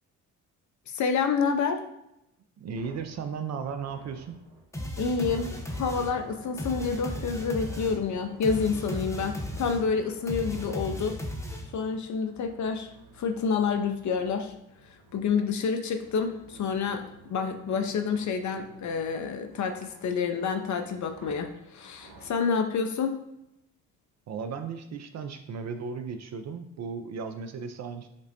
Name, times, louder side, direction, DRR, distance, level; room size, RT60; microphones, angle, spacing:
voice 1, 0.9-1.8 5.0-5.5 5.8-11.1 11.7-12.9 13.2-14.5 15.1-23.2, left 5 dB, 45° left, 6 dB, 0.5 m, -28 dB
voice 2, 2.6-4.4 24.3-28.1, right 6 dB, 40° right, 7 dB, 0.4 m, -35 dB
sound 1, 2.7-22.3, right 3 dB, 55° right, 0.9 m, -52 dB
sound 2, 4.7-11.9, equal, 5° left, 0.8 m, -36 dB
5.0 x 2.0 x 2.7 m, 0.83 s
hypercardioid pair, 50°, 42 cm